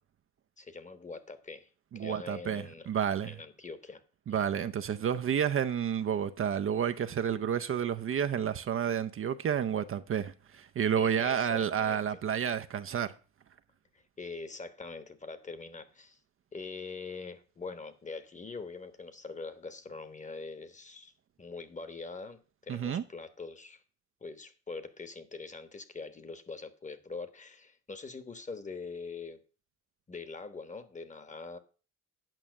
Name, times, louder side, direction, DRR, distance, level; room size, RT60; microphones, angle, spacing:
voice 1, 0.6-1.7 1.9-2.9 3.2-4.0 4.3-4.5 11.0-12.2 14.2-16.2 16.5-21.1 21.4-23.8 24.2-29.4 30.1-31.6, left 4 dB, 25° left, 1.2 m, -43 dB
voice 2, 1.9-3.3 4.3-13.1 22.7-23.0, right 8 dB, 45° right, 0.6 m, -30 dB
9.1 x 5.6 x 6.3 m
cardioid pair, 90°, 30 cm